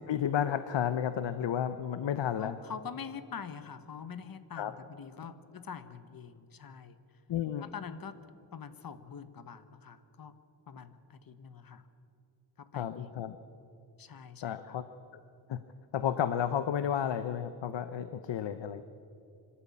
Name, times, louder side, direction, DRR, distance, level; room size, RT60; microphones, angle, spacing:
voice 1, 0.0-2.6 4.6-4.7 7.3-7.7 12.8-13.4 14.4-14.8 15.5-15.6 15.9-18.8, left 9 dB, 75° left, 12 dB, 0.8 m, -32 dB
voice 2, 2.4-7.0 7.6-8.2 8.5-10.3 10.7-11.9 12.6-13.2 14.0-14.8, left 6 dB, 50° left, 12 dB, 1.1 m, -45 dB
25.5 x 13.0 x 8.5 m, 2.6 s
wide cardioid pair, 120°, 44 cm